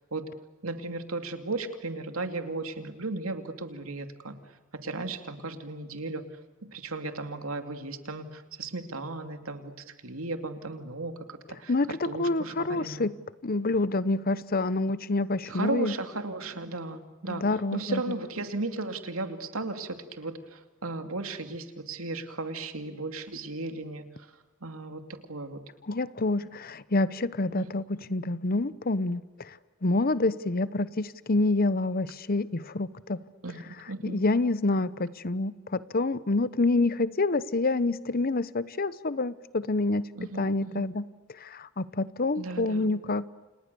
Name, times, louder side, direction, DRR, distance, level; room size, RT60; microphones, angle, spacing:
voice 1, 0.6-6.4 6.7-13.1 15.5-25.0 25.3-25.6 27.6-27.7 33.4-34.2 40.2-40.9 42.4-42.9, right 2 dB, 90° right, 7 dB, 2.7 m, -36 dB
voice 2, 11.7-13.1 13.4-15.9 17.3-18.0 25.9-27.8 28.1-29.6 29.8-33.2 34.0-40.1 40.4-41.0 41.4-43.3, left 2 dB, 45° left, 16 dB, 0.9 m, -27 dB
29.5 x 29.0 x 7.0 m, 1.2 s
head